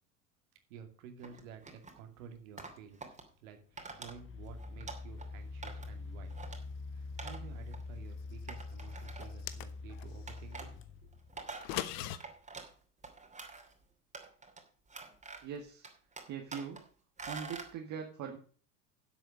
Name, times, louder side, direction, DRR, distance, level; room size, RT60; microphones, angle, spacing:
voice 1, 0.7-3.1 3.4-6.4 6.9-10.7 11.0-11.1, right 7 dB, 60° right, 6 dB, 2.6 m, -52 dB
sound 1, 1.2-2.0 2.6-3.2 3.8-4.1 4.5-5.3 5.6-6.0 6.3-6.6 7.2-7.4 7.7-7.8 8.5-9.5 10.3-10.7 11.1-12.7 13.0-13.7 14.1-14.6 14.9-15.6 15.8-16.8 17.2-17.7, right 4 dB, 15° right, 2.8 m, -46 dB
sound 2, 2.6-2.8 3.7-11.7, left 3 dB, 25° left, 1.4 m, -45 dB
sound 3, 9.2-10.1 11.5-12.2, left 13 dB, 50° left, 1.1 m, -39 dB
voice 2, 15.4-15.9 16.3-16.8 17.3-18.4, right 7 dB, 40° right, 3 dB, 1.9 m, -41 dB
11.5 x 7.8 x 5.2 m, 0.41 s
figure-of-eight pair, 80°, 45 cm